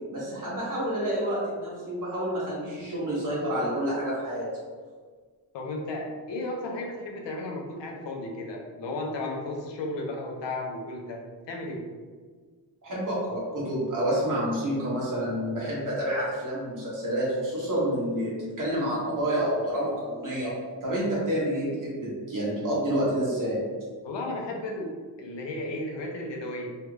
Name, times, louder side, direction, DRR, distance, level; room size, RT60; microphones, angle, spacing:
voice 1, 0.1-4.5 12.8-20.5 20.8-23.6, equal, 50° right, -6 dB, 1.3 m, -28 dB
voice 2, 5.5-11.8 24.0-26.7, left 2 dB, 90° left, 1 dB, 0.7 m, -34 dB
3.2 x 2.3 x 3.2 m, 1.5 s
wide cardioid pair, 150°, 42 cm